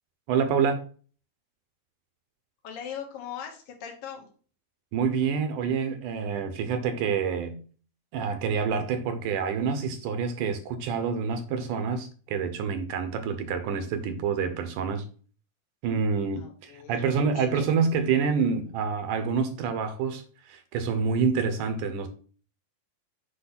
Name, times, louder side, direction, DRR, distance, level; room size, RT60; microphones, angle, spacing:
voice 1, 0.3-0.8 4.9-7.6 8.1-15.0 15.8-22.1, right 6 dB, 75° right, 2.1 m, -27 dB
voice 2, 2.6-4.3 16.4-17.0 17.3-17.7, left 8 dB, 75° left, 3.0 m, -40 dB
7.8 x 3.1 x 5.8 m
omnidirectional pair, 4.0 m